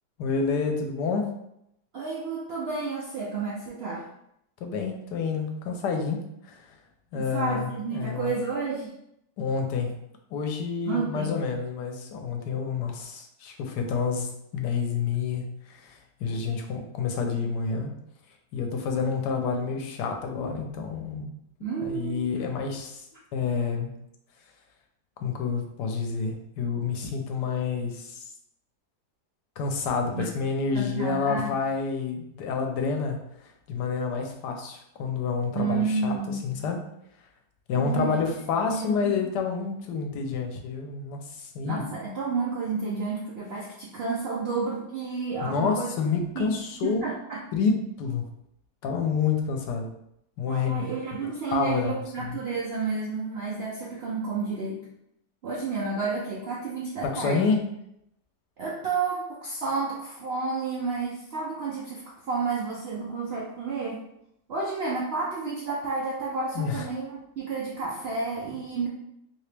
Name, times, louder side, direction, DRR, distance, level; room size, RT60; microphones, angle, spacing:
voice 1, 0.2-1.3 4.6-6.7 7.1-8.4 9.4-9.9 10.3-17.9 18.5-21.3 21.8-23.1 23.3-23.9 25.2-28.2 29.6-33.2 33.7-36.8 37.7-41.8 45.4-47.1 47.5-48.2 48.8-49.9 50.4-50.9 51.2-52.4 57.0-57.6 66.5-66.9, left 5 dB, 80° left, 3 dB, 1.2 m, -29 dB
voice 2, 1.9-4.0 7.1-8.9 10.9-11.3 21.6-22.3 30.1-30.2 30.7-31.5 35.5-36.5 37.7-38.2 38.7-39.3 41.6-45.9 46.3-46.5 46.8-47.4 50.5-54.8 55.4-57.5 58.6-64.0 64.5-68.9, right 4 dB, 80° right, -5 dB, 0.5 m, -31 dB
3.0 x 2.9 x 3.2 m, 0.78 s
omnidirectional pair, 1.8 m